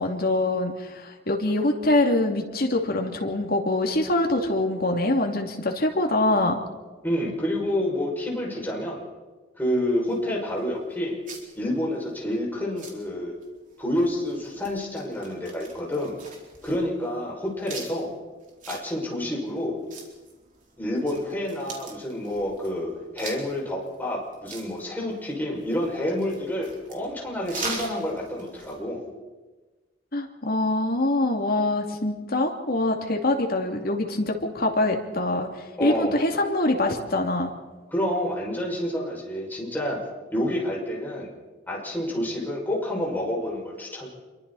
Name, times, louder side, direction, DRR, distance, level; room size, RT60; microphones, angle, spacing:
voice 1, 0.0-6.6 30.1-35.5 35.8-37.5, left 2 dB, 50° left, 2 dB, 2.8 m, -24 dB
voice 2, 7.0-9.0 9.6-11.2 11.5-13.3 13.8-16.2 16.6-18.1 18.7-19.8 20.8-29.0 35.8-36.2 37.9-40.0 40.3-41.3 41.7-44.1, left 1 dB, 10° left, -3 dB, 6.3 m, -28 dB
sound 1, 10.1-28.8, right 3 dB, 45° right, 4.3 m, -43 dB
28.0 x 23.5 x 4.3 m, 1.2 s
head